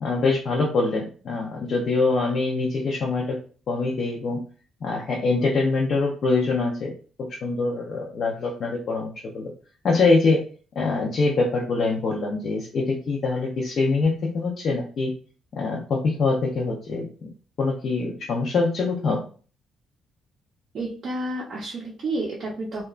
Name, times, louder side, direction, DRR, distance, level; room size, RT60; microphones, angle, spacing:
voice 1, 0.0-3.4 3.7-4.4 4.8-6.9 7.3-9.5 9.8-10.4 10.8-15.1 15.5-17.1 17.6-19.2, left 3 dB, 45° left, -2 dB, 0.5 m, -24 dB
voice 2, 20.7-22.9, right 2 dB, 45° right, -4 dB, 0.5 m, -30 dB
2.8 x 2.2 x 2.4 m, 0.40 s
cardioid pair, 165°, 0 cm